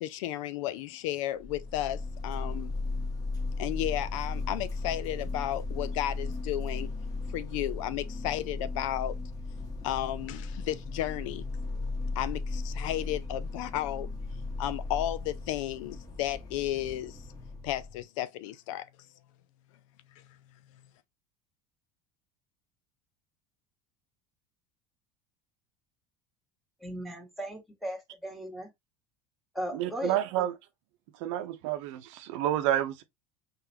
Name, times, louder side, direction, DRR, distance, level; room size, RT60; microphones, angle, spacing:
voice 1, 0.0-2.7 3.6-6.9 7.3-9.1 9.8-11.4 12.2-14.1 14.6-17.2 17.6-18.9, left 13 dB, 80° left, 0.5 m, -33 dB
sound 1, 1.4-18.0, left 3 dB, 25° left, 1.6 m, -36 dB
voice 2, 26.8-28.7 29.5-30.4, equal, ahead, 1.6 m, -37 dB
voice 3, 29.7-30.5 31.2-33.0, right 12 dB, 75° right, 0.7 m, -29 dB
3.9 x 3.3 x 2.8 m
supercardioid pair, 100°, 16 cm